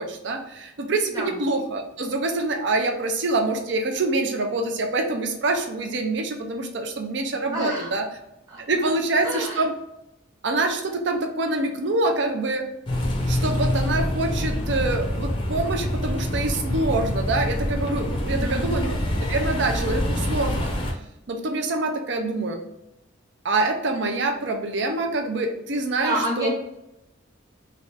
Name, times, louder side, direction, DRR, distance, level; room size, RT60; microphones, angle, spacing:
voice 1, 0.0-8.0 8.6-9.7 10.4-12.6 13.3-19.0 19.3-20.7 21.3-22.6 23.4-26.5, right 2 dB, 65° right, 4 dB, 0.5 m, -25 dB
voice 2, 7.5-7.9 8.5-8.9 9.2-9.6 18.3-18.7 26.0-26.5, right 1 dB, 20° right, -2 dB, 0.9 m, -29 dB
sound 1, 12.9-20.9, left 1 dB, 25° left, 0.5 m, -26 dB
3.2 x 2.4 x 4.0 m, 0.85 s
head